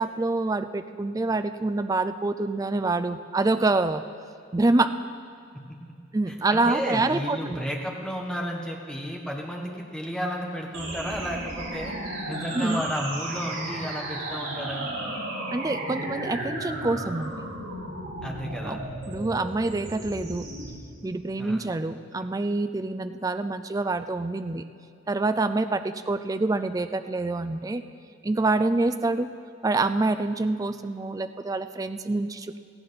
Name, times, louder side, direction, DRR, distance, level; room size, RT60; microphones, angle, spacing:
voice 1, 0.0-4.0 4.5-4.9 6.1-7.6 12.5-12.8 15.5-17.5 18.6-18.8 19.1-20.5 21.0-24.6 25.1-27.8 28.2-29.3 29.6-32.6, right 2 dB, 20° right, 10 dB, 0.3 m, -26 dB
voice 2, 6.3-11.9 12.3-14.9 18.2-18.8 21.4-21.6, equal, 5° left, -1 dB, 1.3 m, -33 dB
sound 1, 10.7-20.7, right 1 dB, 85° right, 3.8 m, -34 dB
17.5 x 14.5 x 4.1 m, 2.3 s
head